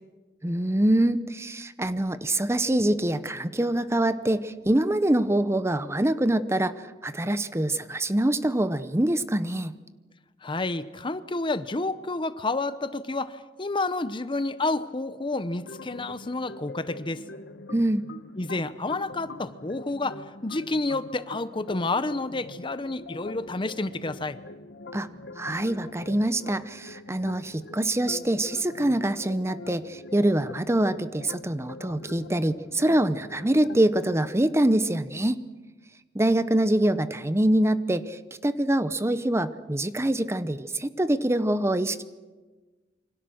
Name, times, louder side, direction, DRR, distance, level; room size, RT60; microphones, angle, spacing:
voice 1, 0.4-9.7 17.7-18.0 24.9-25.1 25.4-35.4 36.1-42.0, right 1 dB, 15° right, 12 dB, 0.8 m, -25 dB
voice 2, 10.4-17.2 18.4-24.4, left 2 dB, 30° left, 13 dB, 0.8 m, -30 dB
sound 1, 15.5-34.2, left 2 dB, 75° left, 1.3 m, -44 dB
27.5 x 25.0 x 6.4 m, 1.3 s
head